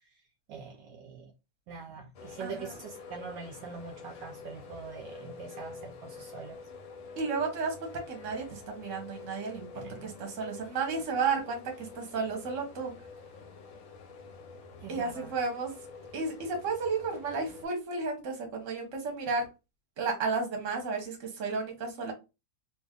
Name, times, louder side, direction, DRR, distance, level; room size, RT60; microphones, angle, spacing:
voice 1, 0.5-1.3 1.7-6.6 9.7-10.1 14.8-15.3, right 5 dB, 75° right, 1.1 m, -43 dB
sound 1, 2.1-17.7, left 4 dB, 60° left, 0.8 m, -47 dB
voice 2, 2.4-2.7 7.2-12.9 14.9-15.7 16.1-19.5 20.0-22.1, right 4 dB, 50° right, 1.2 m, -33 dB
2.9 x 2.6 x 3.5 m
omnidirectional pair, 2.1 m